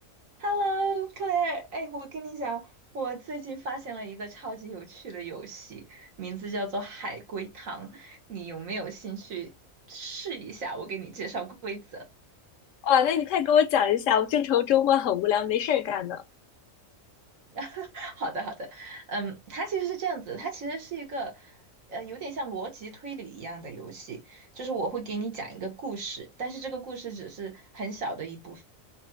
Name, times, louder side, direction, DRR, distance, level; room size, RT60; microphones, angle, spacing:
voice 1, 0.4-2.7 2.9-9.5 9.9-12.0 17.5-21.6 21.9-28.6, right 3 dB, 75° right, 1.6 m, -34 dB
voice 2, 12.8-16.2, left 9 dB, 70° left, 0.9 m, -23 dB
3.3 x 2.5 x 4.4 m
omnidirectional pair, 1.4 m